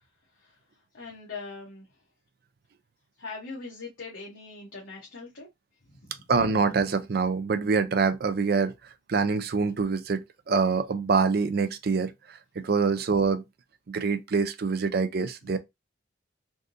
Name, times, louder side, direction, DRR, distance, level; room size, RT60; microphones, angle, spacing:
voice 1, 0.9-1.9 3.2-5.5 5.8-6.2 15.4-15.6, left 4 dB, 70° left, 1.0 m, -41 dB
voice 2, 6.3-8.7 9.1-13.4 13.9-15.6, right 4 dB, 50° right, 0.4 m, -25 dB
3.5 x 2.6 x 2.6 m
head